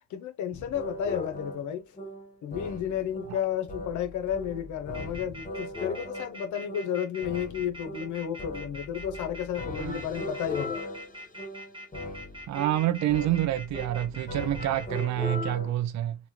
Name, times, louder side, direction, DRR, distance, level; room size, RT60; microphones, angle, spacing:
voice 1, 0.1-1.8 2.4-10.8, left 9 dB, 75° left, 0.7 m, -32 dB
sound 1, 0.5-15.7, left 1 dB, 25° left, 1.0 m, -39 dB
sound 2, 4.9-15.1, equal, 15° right, 0.9 m, -43 dB
voice 2, 12.5-16.2, right 13 dB, 65° right, 0.5 m, -27 dB
3.0 x 2.3 x 2.8 m
supercardioid pair, 70°, 30 cm